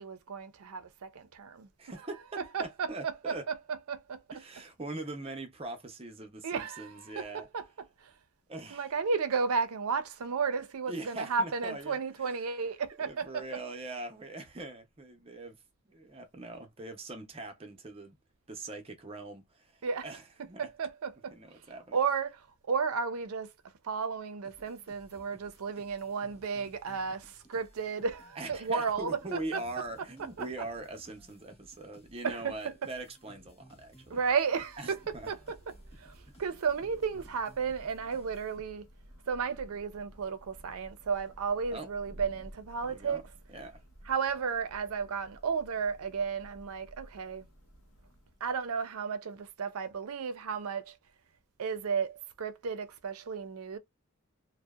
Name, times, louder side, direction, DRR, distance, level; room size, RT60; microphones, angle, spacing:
voice 1, 0.0-1.7 2.4-4.4 6.4-7.6 8.0-8.1 8.7-13.5 19.8-20.0 20.4-21.3 21.9-23.5 23.8-29.6 30.4-30.5 32.2-32.7 34.1-35.6 36.0-38.9 39.3-43.3 44.1-47.5 48.4-51.0 51.6-53.8, right 5 dB, 80° right, 0.5 m, -33 dB
voice 2, 1.8-3.5 4.3-7.5 8.5-8.9 10.9-12.0 12.2-12.3 13.1-15.6 15.8-18.2 18.5-20.6 21.3-22.0 28.4-34.2 34.8-35.3 41.7-41.9 42.9-43.2 43.5-43.8, right 2 dB, 25° right, 0.6 m, -42 dB
sound 1, 24.4-39.0, equal, 25° left, 0.9 m, -59 dB
Thunder / Rain, 34.5-48.8, equal, 70° left, 0.9 m, -54 dB
2.7 x 2.1 x 2.3 m
head